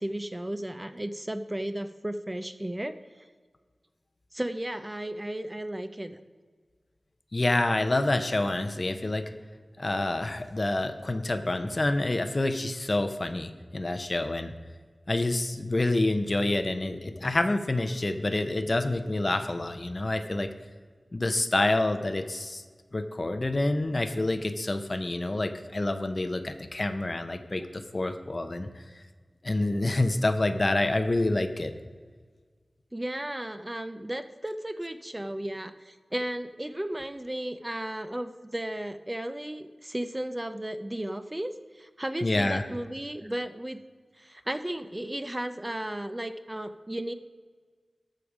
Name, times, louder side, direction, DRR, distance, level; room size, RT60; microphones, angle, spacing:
voice 1, 0.0-3.3 4.3-6.2 32.9-43.8 44.2-47.1, right 1 dB, 20° right, 10 dB, 0.5 m, -34 dB
voice 2, 7.3-9.3 9.8-14.5 15.1-20.5 21.1-22.6 22.9-28.7 29.4-31.7 42.2-42.6, left 2 dB, 40° left, 9 dB, 0.7 m, -27 dB
14.0 x 5.2 x 4.9 m, 1.5 s
wide cardioid pair, 75°, 0 cm